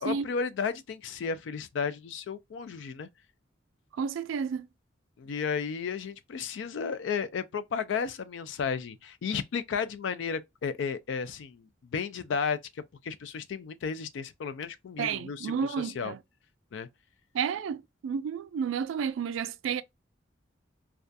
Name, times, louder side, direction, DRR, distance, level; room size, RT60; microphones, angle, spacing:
voice 1, 0.0-3.1 5.2-16.1 16.7-16.9, left 6 dB, 70° left, 0.3 m, -33 dB
voice 2, 3.9-4.7 15.0-16.2 17.3-19.8, right 7 dB, 85° right, 0.3 m, -31 dB
2.3 x 2.2 x 2.5 m
head